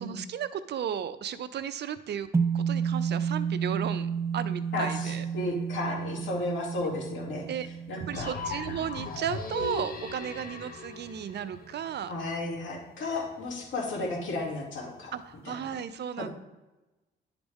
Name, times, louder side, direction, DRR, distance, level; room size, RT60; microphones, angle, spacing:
voice 1, 0.0-2.3 2.5-5.3 7.5-7.7 7.9-12.1 15.1-16.3, right 9 dB, 60° right, 13 dB, 0.6 m, -34 dB
sound 1, 2.3-10.8, right 6 dB, 15° right, 0.3 m, -32 dB
voice 2, 4.7-7.5 7.9-8.3 12.1-15.2 15.4-15.6 16.2-16.3, left 2 dB, 70° left, -2 dB, 2.9 m, -33 dB
sound 2, 8.1-12.1, left 3 dB, 45° left, 1.4 m, -37 dB
10.5 x 4.9 x 3.6 m, 1.1 s
cardioid pair, 90°, 20 cm